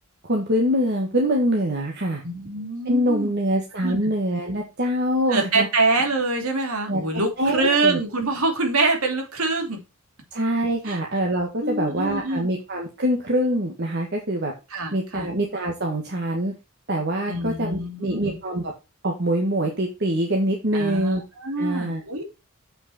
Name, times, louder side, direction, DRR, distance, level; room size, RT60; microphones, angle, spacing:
voice 1, 0.2-2.2 2.8-5.7 6.9-7.0 7.4-8.0 10.3-14.5 14.9-16.5 16.9-18.7 19.0-21.2 21.6-22.0, equal, 50° right, 1 dB, 1.6 m, -24 dB
voice 2, 2.2-3.3 3.8-4.0 5.3-9.8 10.8-11.0 11.6-12.5 14.7-15.3 17.3-18.4 20.7-22.2, right 3 dB, 90° right, 4 dB, 2.8 m, -25 dB
7.6 x 6.4 x 4.2 m, 0.27 s
head